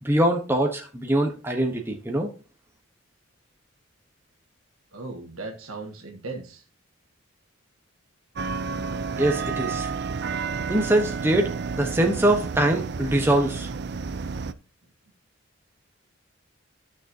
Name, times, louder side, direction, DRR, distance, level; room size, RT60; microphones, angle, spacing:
voice 1, 0.0-2.3 9.2-9.9 10.7-13.7, right 1 dB, 10° right, 1.0 m, -23 dB
voice 2, 4.9-6.6, right 3 dB, 85° right, 1.6 m, -37 dB
sound 1, 8.4-14.5, right 5 dB, 50° right, 0.5 m, -31 dB
13.0 x 6.4 x 2.7 m
head